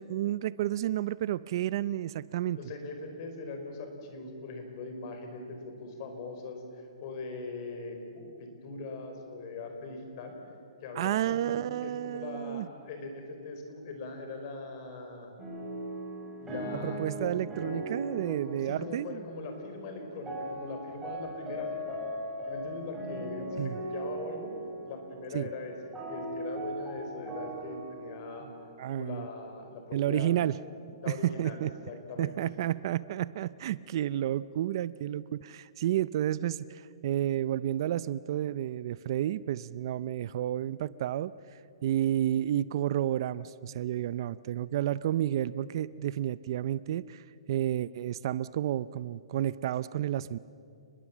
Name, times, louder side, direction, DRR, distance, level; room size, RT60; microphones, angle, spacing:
voice 1, 0.0-2.6 10.9-12.7 16.8-19.2 23.6-23.8 25.3-25.5 28.8-29.3 29.9-30.5 31.1-31.7 32.2-50.4, right 12 dB, 45° right, 18 dB, 0.5 m, -31 dB
voice 2, 2.5-10.4 10.8-15.4 16.4-17.3 18.1-22.0 22.5-24.5 24.9-25.7 26.0-28.5 28.9-30.3 31.0-32.3, left 3 dB, 40° left, 5 dB, 4.9 m, -41 dB
sound 1, 15.4-29.4, right 1 dB, 10° right, 7.9 m, -39 dB
29.0 x 21.5 x 7.4 m, 2.5 s
hypercardioid pair, 155°, 3 cm